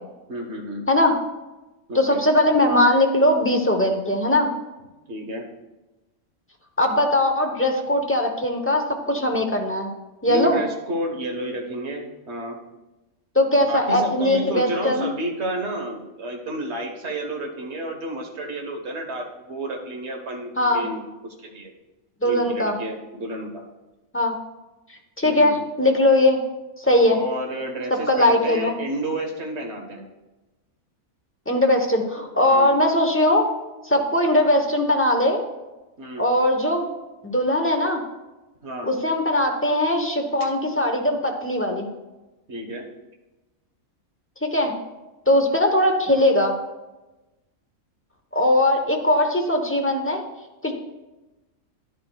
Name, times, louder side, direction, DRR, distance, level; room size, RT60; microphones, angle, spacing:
voice 1, 0.3-0.8 1.9-2.2 5.1-5.4 10.3-12.6 13.7-21.7 22.2-23.6 25.2-25.5 27.1-30.1 32.5-32.8 36.0-36.2 38.6-38.9 42.5-42.9, right 1 dB, 50° right, 2 dB, 1.5 m, -31 dB
voice 2, 1.9-4.5 6.8-9.9 10.2-10.6 13.3-15.1 20.6-20.9 22.2-22.8 24.1-24.3 25.2-26.4 26.8-27.2 27.9-28.8 31.5-33.5 33.8-35.4 36.2-36.9 37.2-38.0 38.8-41.9 44.4-44.7 45.3-46.5 48.3-50.2 50.6-50.7, left 1 dB, 10° left, 3 dB, 0.7 m, -20 dB
11.5 x 10.0 x 2.3 m, 1.1 s
omnidirectional pair, 1.5 m